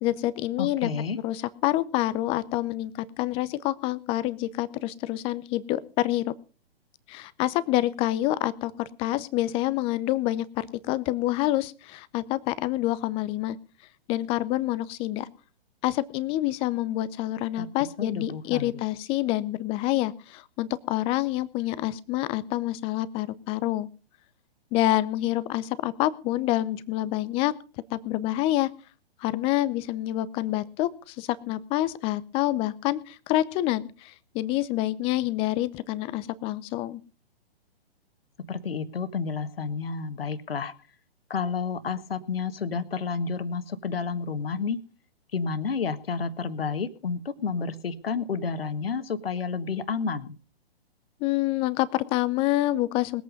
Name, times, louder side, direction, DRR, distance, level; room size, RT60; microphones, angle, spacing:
voice 1, 0.0-0.9 1.2-6.3 7.1-13.6 14.1-15.3 15.8-23.9 24.7-27.6 27.9-28.7 29.2-37.0 51.2-53.2, left 15 dB, 20° left, 18 dB, 0.6 m, -27 dB
voice 2, 0.6-1.2 17.6-17.7 18.0-18.7 38.5-40.7 41.3-44.8 45.3-50.4, left 5 dB, 65° left, 12 dB, 1.7 m, -30 dB
20.5 x 8.4 x 5.3 m, 0.36 s
figure-of-eight pair, 125°, 31 cm